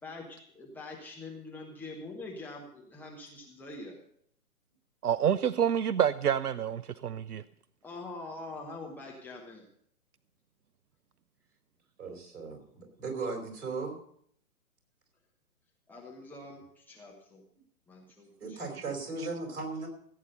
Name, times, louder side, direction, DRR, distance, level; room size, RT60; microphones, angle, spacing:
voice 1, 0.0-4.0 7.8-9.7 15.9-17.4 17.9-18.9, left 2 dB, 5° left, -3 dB, 1.0 m, -44 dB
voice 2, 5.0-7.4, right 9 dB, 85° right, 17 dB, 0.6 m, -28 dB
voice 3, 12.0-14.0 18.4-19.9, right 4 dB, 50° right, 3 dB, 4.5 m, -37 dB
16.0 x 8.5 x 5.3 m, 0.64 s
figure-of-eight pair, 125°, 44 cm